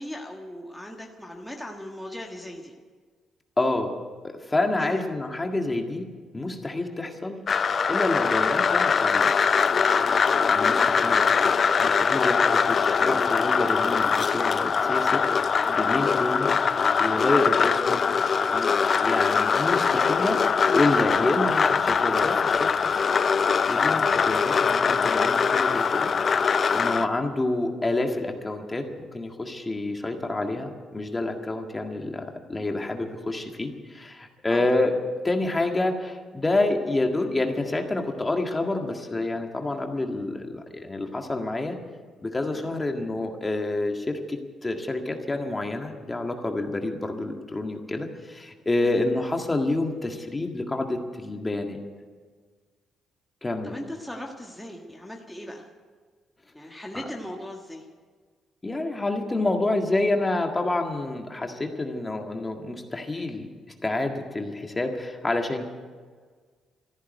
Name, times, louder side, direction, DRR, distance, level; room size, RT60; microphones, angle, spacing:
voice 1, 0.0-2.7 4.8-5.0 10.5-11.2 34.5-34.7 42.5-42.8 48.8-49.0 53.6-55.7 56.5-57.9, left 1 dB, 5° left, 0 dB, 1.6 m, -39 dB
voice 2, 3.6-4.0 4.2-6.1 6.3-7.4 7.9-9.3 10.5-15.2 15.7-16.5 17.0-18.7 19.0-20.4 20.7-22.7 23.7-26.1 26.4-32.2 32.5-34.9 35.2-41.8 42.2-51.8 53.4-53.7 56.9-57.0 58.6-63.5 63.8-65.7, left 2 dB, 20° left, 4 dB, 1.8 m, -28 dB
sound 1, 7.5-27.1, left 6 dB, 45° left, 0.5 m, -22 dB
14.0 x 11.5 x 9.1 m, 1.5 s
cardioid pair, 90°, 0 cm